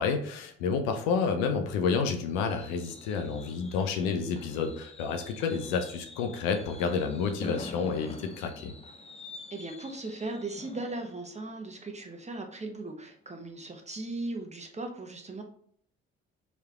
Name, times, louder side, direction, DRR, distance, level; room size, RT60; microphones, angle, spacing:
voice 1, 0.0-8.7, left 5 dB, 75° left, 6 dB, 0.7 m, -30 dB
Fireworks, 1.7-13.0 13.4-13.7 13.9-14.0, left 3 dB, 20° left, 0.7 m, -47 dB
voice 2, 9.5-15.4, right 2 dB, 20° right, 3 dB, 1.1 m, -38 dB
4.7 x 3.4 x 2.9 m, 0.62 s
hypercardioid pair, 50°, 33 cm